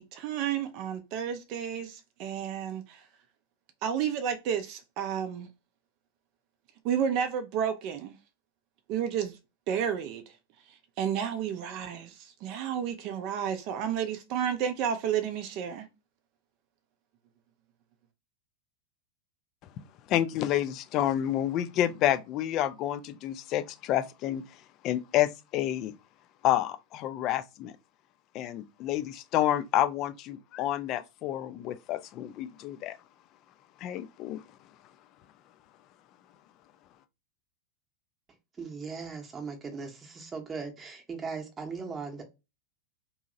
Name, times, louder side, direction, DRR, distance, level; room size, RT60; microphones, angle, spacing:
voice 1, 0.0-3.0 3.8-5.5 6.8-8.1 8.9-9.4 9.7-10.2 10.7-15.9, right 8 dB, 40° right, 0.4 m, -31 dB
voice 2, 20.1-24.4 24.8-25.9 26.4-27.7 28.3-33.0 33.8-34.4, left 12 dB, 35° left, 0.3 m, -29 dB
voice 3, 38.6-42.2, right 5 dB, 20° right, 0.8 m, -38 dB
2.7 x 2.7 x 2.6 m
figure-of-eight pair, 90°, 0 cm